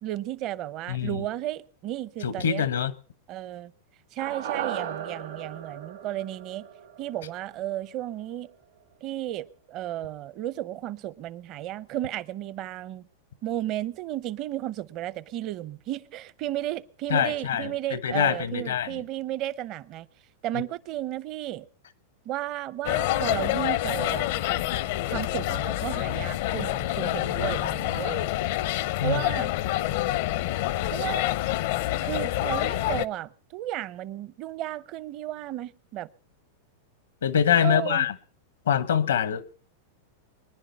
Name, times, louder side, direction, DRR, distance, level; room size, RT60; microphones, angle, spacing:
voice 1, 0.0-2.7 3.3-3.7 4.1-6.7 7.0-8.5 9.0-13.1 13.4-20.1 20.4-21.7 22.2-24.3 25.1-28.3 29.0-29.5 30.9-31.2 32.0-36.1 37.6-38.1, right 13 dB, 45° right, 0.7 m, -33 dB
voice 2, 0.9-1.2 2.2-2.9 17.1-19.0 27.4-27.5 29.0-29.2 37.2-38.1 38.7-39.5, left 8 dB, 85° left, 1.1 m, -25 dB
sound 1, 4.2-8.5 8.8-8.9, right 9 dB, 80° right, 2.3 m, -37 dB
sound 2, 22.8-33.0, left 15 dB, 65° left, 0.6 m, -27 dB
23.0 x 10.5 x 5.3 m
hypercardioid pair, 120°, 0 cm